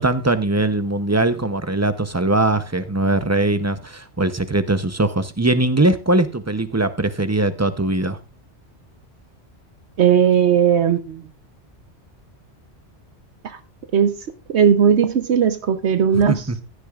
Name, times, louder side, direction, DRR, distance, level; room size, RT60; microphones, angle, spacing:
voice 1, 0.0-8.2 16.1-16.6, right 2 dB, 20° right, 0.5 m, -21 dB
voice 2, 10.0-11.2 13.9-14.1 14.5-16.4, right 8 dB, 70° right, 1.0 m, -17 dB
15.5 x 9.9 x 2.4 m
omnidirectional pair, 1.2 m